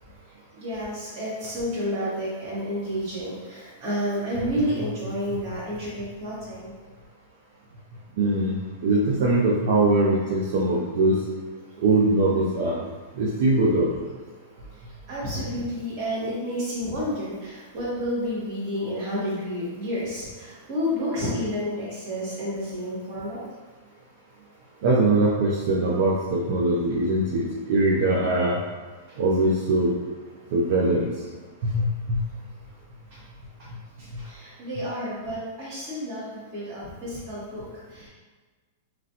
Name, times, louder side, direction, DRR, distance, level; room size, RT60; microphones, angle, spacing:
voice 1, 0.5-6.7 15.1-23.4 33.1-33.2 34.2-38.1, equal, 40° right, -8 dB, 1.4 m, -30 dB
voice 2, 8.2-11.2 11.8-12.8 13.2-13.9 24.8-28.6 29.2-29.9 30.5-31.1 31.7-32.2, right 2 dB, 60° right, -5 dB, 0.5 m, -22 dB
3.0 x 2.5 x 2.8 m, 1.3 s
supercardioid pair, 150°, 0 cm